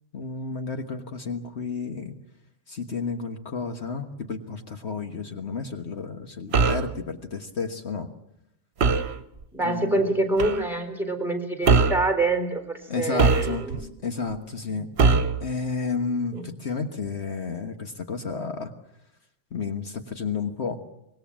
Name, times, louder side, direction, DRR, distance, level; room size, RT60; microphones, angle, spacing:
voice 1, 0.1-2.1 2.7-8.1 9.6-10.0 12.9-14.9 15.4-18.7 19.5-20.8, left 4 dB, 65° left, 5 dB, 1.7 m, -31 dB
sound 1, 6.5-6.9 8.8-9.1 10.4-10.6 11.6-12.1 13.2-13.8 15.0-15.4, right 4 dB, 60° right, 1.3 m, -20 dB
voice 2, 9.5-13.8 14.7-14.9 16.3-16.5, right 2 dB, ahead, 4 dB, 4.1 m, -26 dB
25.0 x 21.0 x 7.5 m, 0.80 s
omnidirectional pair, 1.2 m